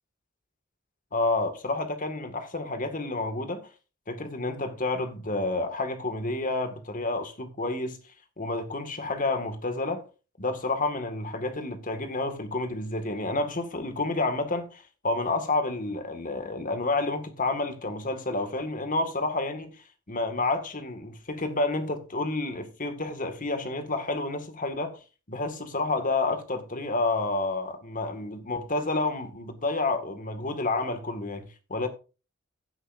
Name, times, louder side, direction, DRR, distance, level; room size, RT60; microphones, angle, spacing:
voice 1, 1.1-3.7 4.1-8.0 8.4-10.0 10.4-19.8 20.1-25.0 25.3-31.9, left 2 dB, 40° left, 2.0 m, -29 dB
16.0 x 8.0 x 2.7 m
head